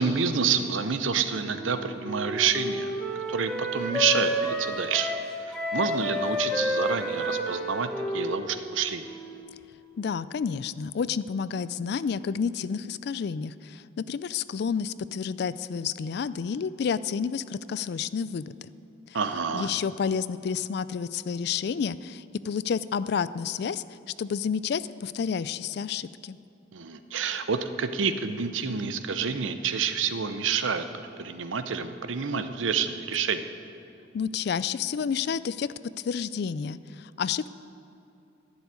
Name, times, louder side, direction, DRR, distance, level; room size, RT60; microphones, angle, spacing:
voice 1, 0.0-2.9 3.3-5.1 5.4-9.1 19.1-19.7 26.7-33.5, right 6 dB, 80° right, 10 dB, 0.7 m, -28 dB
Wind instrument woodwind instrument, 1.5-9.5, equal, 5° left, 1.1 m, -31 dB
voice 2, 10.0-18.7 19.5-23.8 24.2-26.4 34.1-35.7 36.0-37.5, left 6 dB, 55° left, 16 dB, 0.3 m, -30 dB
11.5 x 7.1 x 9.4 m, 2.7 s
head